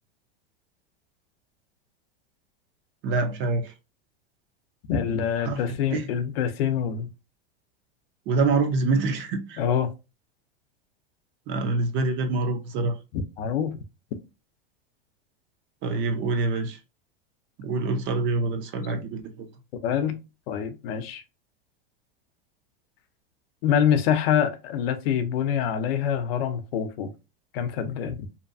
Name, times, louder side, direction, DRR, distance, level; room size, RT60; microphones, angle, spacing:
voice 1, 3.0-3.7 5.4-5.6 5.9-6.1 8.3-9.6 11.5-13.0 15.8-16.8 17.6-19.5, right 3 dB, 40° right, 0.5 m, -25 dB
voice 2, 4.9-7.1 9.6-9.9 13.1-13.8 19.8-20.1 20.5-21.2 23.6-27.1 27.5-28.2, left 8 dB, 75° left, 0.6 m, -25 dB
2.7 x 2.2 x 2.6 m
supercardioid pair, 125°, 31 cm